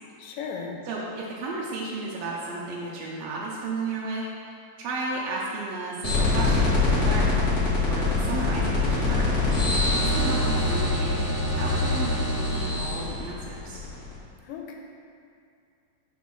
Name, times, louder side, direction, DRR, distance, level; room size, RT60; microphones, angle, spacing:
voice 1, 0.2-0.8 8.3-8.6 14.5-14.7, left 6 dB, 90° left, 1 dB, 2.3 m, -36 dB
voice 2, 0.8-4.5 4.8-9.3 10.0-13.8, right 3 dB, 75° right, -5 dB, 1.6 m, -34 dB
sound 1, 6.0-14.2, left 2 dB, 40° left, 1.3 m, -24 dB
5.5 x 4.1 x 6.1 m, 2.5 s
omnidirectional pair, 3.8 m